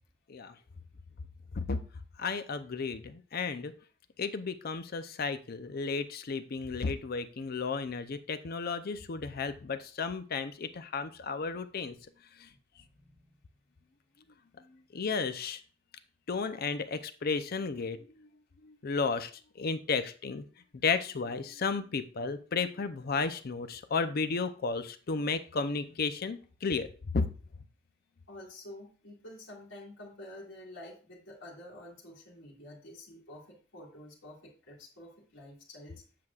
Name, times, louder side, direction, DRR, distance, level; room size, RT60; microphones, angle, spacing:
voice 1, 2.2-3.7 4.2-11.9 12.4-12.5 14.9-15.6 16.3-18.0 18.6-19.3 19.6-20.5 20.8-26.9 27.1-27.3, left 4 dB, 50° left, 11 dB, 0.5 m, -33 dB
voice 2, 12.7-13.3 28.3-36.0, left 1 dB, 70° left, -6 dB, 2.1 m, -49 dB
7.6 x 6.3 x 2.4 m, 0.40 s
head